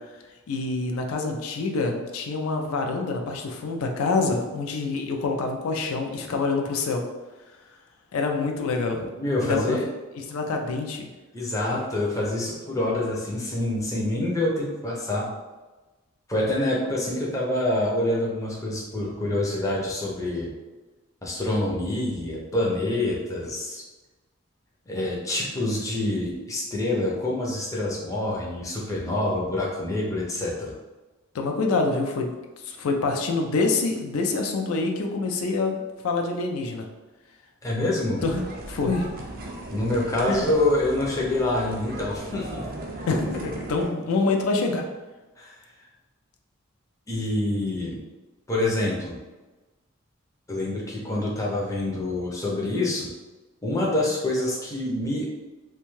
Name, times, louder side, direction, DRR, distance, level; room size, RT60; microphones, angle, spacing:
voice 1, 0.5-7.0 8.1-9.1 9.4-9.8 10.3-11.1 31.3-36.9 38.2-39.2 40.3-40.5 43.1-44.9, left 3 dB, 80° left, 3 dB, 0.4 m, -26 dB
voice 2, 9.2-9.8 11.3-15.3 16.3-20.5 21.2-23.8 24.9-30.7 37.6-38.2 39.7-42.7 45.4-45.5 47.1-48.0 48.5-49.2 50.5-53.1 53.6-55.3, left 1 dB, 15° left, -4 dB, 0.5 m, -26 dB
sound 1, 38.2-43.9, right 1 dB, 45° right, 0.4 m, -37 dB
2.6 x 2.2 x 3.0 m, 1.2 s
head